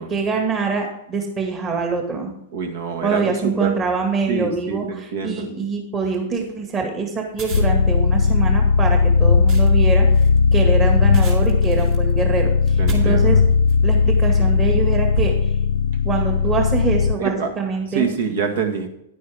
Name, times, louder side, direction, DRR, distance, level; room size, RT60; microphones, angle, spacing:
voice 1, 0.0-2.3 3.0-10.3 10.5-13.4 13.8-15.5 16.0-18.1, right 4 dB, 25° right, 2 dB, 1.9 m, -24 dB
voice 2, 2.5-3.7 4.3-5.5 12.8-13.4 17.2-17.5 17.9-18.9, right 6 dB, 75° right, 5 dB, 1.7 m, -25 dB
sound 1, 7.3-13.9 14.5-14.7 15.1-15.9, right 2 dB, 50° right, 3.2 m, -34 dB
sound 2, 7.5-17.2, left 5 dB, 85° left, 0.4 m, -17 dB
10.5 x 9.3 x 3.5 m, 0.82 s
hypercardioid pair, 120°, 0 cm